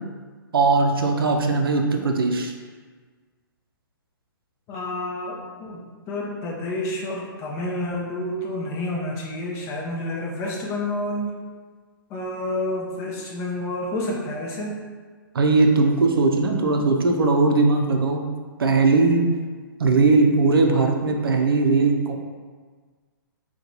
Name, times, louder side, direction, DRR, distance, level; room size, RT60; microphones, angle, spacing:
voice 1, 0.5-2.5 15.3-18.2 18.6-19.2 19.8-22.2, right 3 dB, 80° right, 2 dB, 0.5 m, -19 dB
voice 2, 4.7-5.8 6.1-11.3 12.1-14.8, left 1 dB, 25° left, -2 dB, 0.6 m, -29 dB
2.9 x 2.2 x 3.8 m, 1.5 s
hypercardioid pair, 130°, 12 cm